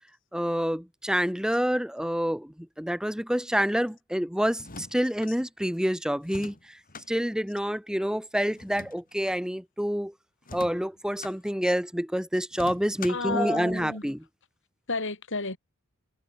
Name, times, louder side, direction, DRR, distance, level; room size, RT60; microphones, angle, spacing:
voice 1, 0.3-6.6 7.1-10.1 10.5-14.2, equal, 5° right, 2.2 m, -27 dB
sound 1, 4.5-5.3 6.2-7.1 8.6-9.4 10.4-11.4 12.5-13.3, left 3 dB, 40° left, 5.4 m, -43 dB
voice 2, 13.1-14.1 14.9-15.6, left 3 dB, 60° left, 5.5 m, -32 dB
head